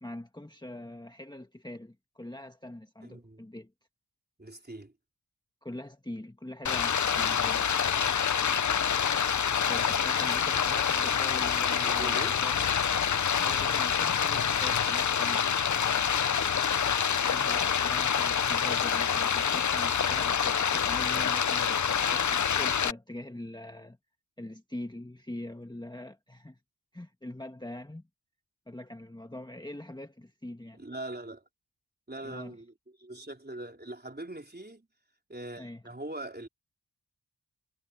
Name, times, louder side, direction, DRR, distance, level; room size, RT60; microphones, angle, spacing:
voice 1, 0.0-3.7 5.6-7.6 9.6-12.7 13.4-15.5 17.2-24.0 24.4-26.6 26.9-28.1 28.7-30.8 32.2-32.5 35.6-35.8, left 1 dB, 10° left, 1.6 m, -43 dB
voice 2, 3.0-3.4 4.4-4.9 11.8-12.4 30.7-31.4 32.1-32.7 33.0-34.9 35.3-36.5, right 1 dB, 25° right, 4.1 m, -41 dB
Stream, 6.7-22.9, left 7 dB, 45° left, 0.6 m, -27 dB
cardioid pair, 50°, 41 cm